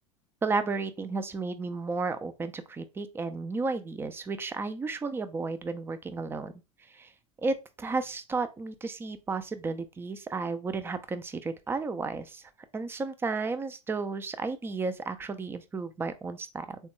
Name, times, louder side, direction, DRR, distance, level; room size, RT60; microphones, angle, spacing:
voice 1, 0.4-6.5 6.9-7.1 7.4-12.4 12.7-16.8, right 4 dB, 15° right, 0.4 m, -33 dB
3.5 x 2.2 x 3.0 m
hypercardioid pair, 80°, 17 cm